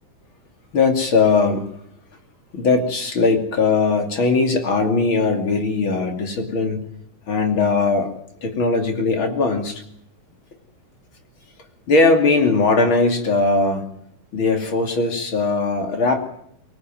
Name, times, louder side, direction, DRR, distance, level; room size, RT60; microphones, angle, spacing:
voice 1, 0.7-1.6 2.5-6.8 7.3-8.1 8.4-9.8 11.9-13.8 14.3-16.3, left 3 dB, 40° left, 4 dB, 3.3 m, -19 dB
23.5 x 20.0 x 9.2 m, 0.70 s
omnidirectional pair, 3.5 m